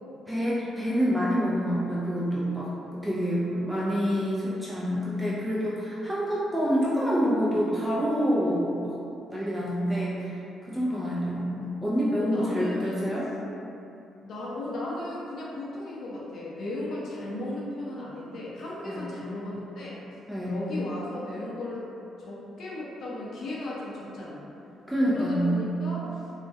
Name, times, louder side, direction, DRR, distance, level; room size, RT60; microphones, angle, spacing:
voice 1, 0.3-9.0 9.3-13.3 18.8-19.0 20.3-20.5 24.9-25.7, equal, 5° right, -8 dB, 0.3 m, -27 dB
voice 2, 3.0-4.0 9.5-9.9 10.8-11.3 12.2-13.0 14.2-20.2 20.4-21.8 22.2-24.4 25.1-26.3, left 1 dB, 65° left, -6 dB, 0.5 m, -36 dB
2.3 x 2.1 x 2.6 m, 2.8 s
cardioid pair, 90°, 0 cm